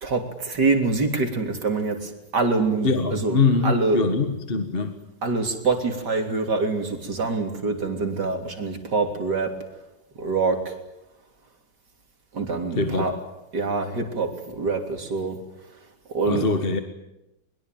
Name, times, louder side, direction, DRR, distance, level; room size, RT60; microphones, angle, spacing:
voice 1, 0.0-4.1 5.2-9.6 10.2-10.8 12.3-13.2 13.5-15.4 15.6-16.5, right 3 dB, 60° right, 5 dB, 3.8 m, -25 dB
voice 2, 2.8-5.0 12.8-13.1 16.3-16.8, left 4 dB, 30° left, 7 dB, 1.7 m, -23 dB
23.0 x 22.0 x 9.2 m, 0.90 s
omnidirectional pair, 2.0 m